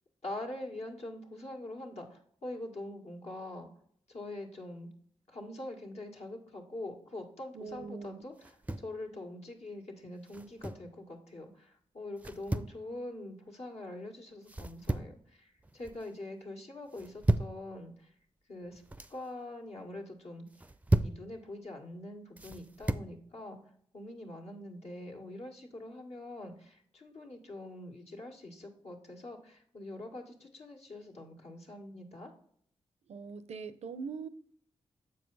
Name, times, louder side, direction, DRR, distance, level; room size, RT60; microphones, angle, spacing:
voice 1, 0.2-3.7 4.1-4.9 5.3-18.1 18.5-18.8 19.1-20.5 21.0-23.6 23.9-32.3, left 1 dB, 65° left, 1.7 m, -44 dB
voice 2, 7.5-8.2 33.1-34.3, right 5 dB, 65° right, 0.5 m, -42 dB
sound 1, 8.4-9.0 10.3-10.9 12.2-12.8 14.5-15.2 15.6-16.1 16.9-17.6 18.6-19.2 20.5-21.2 22.4-23.1, right 1 dB, 10° right, 0.5 m, -33 dB
7.1 x 4.7 x 3.9 m
supercardioid pair, 45°, 12 cm